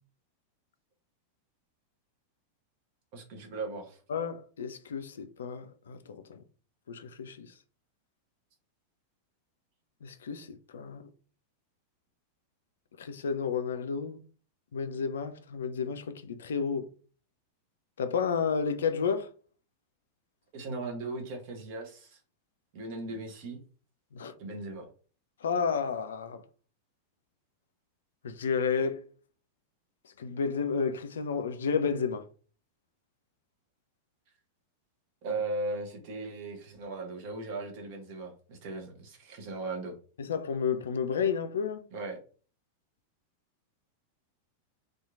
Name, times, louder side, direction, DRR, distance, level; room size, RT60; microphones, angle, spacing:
voice 1, 3.1-4.0 20.5-22.2 22.7-23.6 24.4-24.9 35.2-39.9 41.9-42.2, right 3 dB, 45° right, 0.8 m, -37 dB
voice 2, 4.1-6.4 6.9-7.5 10.0-11.0 13.0-14.2 14.7-16.9 18.0-19.3 24.1-24.3 25.4-26.4 28.2-29.1 30.2-32.3 40.2-41.8, left 6 dB, 65° left, 0.3 m, -31 dB
2.8 x 2.4 x 2.3 m
figure-of-eight pair, 90°, 0 cm